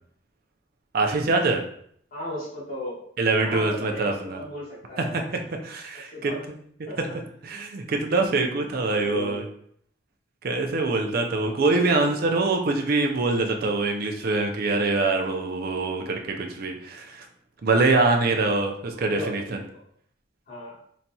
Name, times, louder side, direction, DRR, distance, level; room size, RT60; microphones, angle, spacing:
voice 1, 0.9-1.6 3.2-4.4 5.0-5.2 5.6-6.3 7.0-7.1 7.4-9.4 10.4-17.2 17.6-19.6, right 3 dB, 55° right, 3 dB, 0.4 m, -24 dB
voice 2, 2.1-3.0 3.4-5.2 6.1-6.4 6.9-7.1 9.0-9.4 11.6-12.1 18.2-18.4 18.9-19.3 20.5-20.8, left 1 dB, 50° left, -9 dB, 1.3 m, -36 dB
4.0 x 2.8 x 2.2 m, 0.63 s
head